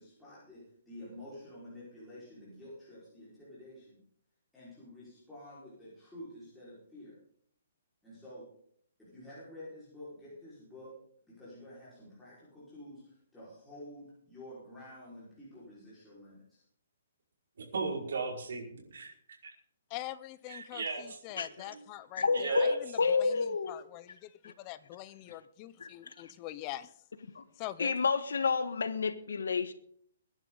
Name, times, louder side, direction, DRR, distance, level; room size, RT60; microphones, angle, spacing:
voice 1, 0.0-4.0 4.5-7.2 8.0-8.5 9.0-10.9 11.3-16.6, left 1 dB, 5° left, 5.0 m, -50 dB
voice 2, 17.6-19.1 20.5-21.8 22.3-22.8, right 4 dB, 70° right, 5.3 m, -37 dB
voice 3, 19.9-26.9 27.6-27.9, left 15 dB, 25° left, 0.6 m, -44 dB
voice 4, 22.2-23.7 24.4-24.5 27.3-27.4 27.8-29.7, left 4 dB, 85° left, 1.4 m, -29 dB
21.5 x 11.0 x 4.0 m
hypercardioid pair, 165°, 0 cm